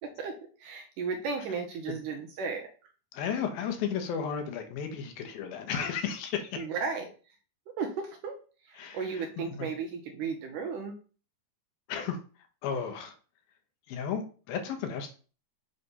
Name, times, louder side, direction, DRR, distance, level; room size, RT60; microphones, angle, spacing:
voice 1, 0.0-2.7 6.6-7.1 7.8-8.4 8.6-11.0, right 5 dB, 75° right, 3 dB, 2.0 m, -35 dB
voice 2, 3.1-6.7 8.8-9.2 9.6-9.7 11.9-12.2 12.6-13.1 13.9-15.1, left 7 dB, 75° left, 6 dB, 2.8 m, -34 dB
8.0 x 3.4 x 5.4 m, 0.38 s
omnidirectional pair, 4.5 m